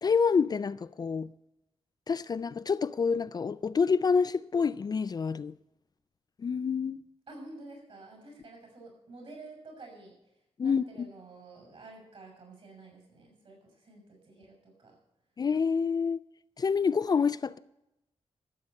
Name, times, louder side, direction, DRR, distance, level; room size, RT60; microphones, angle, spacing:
voice 1, 0.0-1.3 2.1-5.5 6.4-7.0 10.6-10.8 15.4-16.2 16.6-17.6, left 5 dB, 40° left, 0.4 m, -27 dB
voice 2, 7.3-10.1 10.6-14.9, right 2 dB, 60° right, 6.8 m, -50 dB
14.0 x 7.7 x 8.2 m
wide cardioid pair, 135°, 11 cm